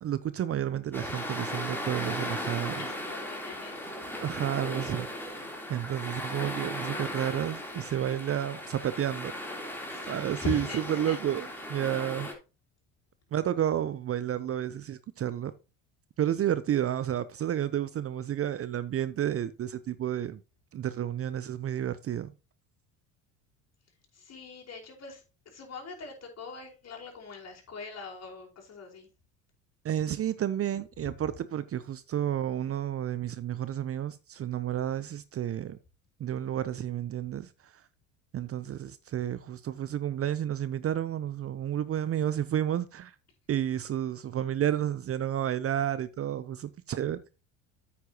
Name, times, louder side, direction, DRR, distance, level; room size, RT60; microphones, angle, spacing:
voice 1, 0.0-2.8 4.2-5.4 5.7-9.3 10.1-12.3 13.3-15.5 16.2-20.4 20.7-22.3 29.8-35.8 36.2-37.7 38.3-43.1 43.5-47.2, right 10 dB, 35° right, 0.7 m, -31 dB
sound 1, 0.9-12.3, left 1 dB, 5° left, 3.5 m, -37 dB
voice 2, 2.8-4.1 9.9-11.2 24.1-29.1, left 4 dB, 40° left, 4.9 m, -42 dB
9.4 x 8.6 x 2.9 m
hypercardioid pair, 75°, 38 cm